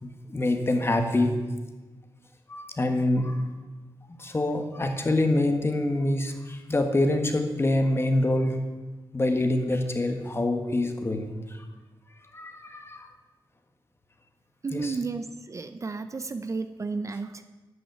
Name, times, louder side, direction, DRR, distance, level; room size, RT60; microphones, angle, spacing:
voice 1, 0.0-1.4 2.5-3.5 4.2-8.6 9.1-11.6 12.3-13.1 14.7-15.0, left 1 dB, 25° left, 6 dB, 1.6 m, -26 dB
voice 2, 14.6-17.4, right 4 dB, 35° right, 10 dB, 0.6 m, -33 dB
11.0 x 6.3 x 9.2 m, 1.2 s
cardioid pair, 80°, 9 cm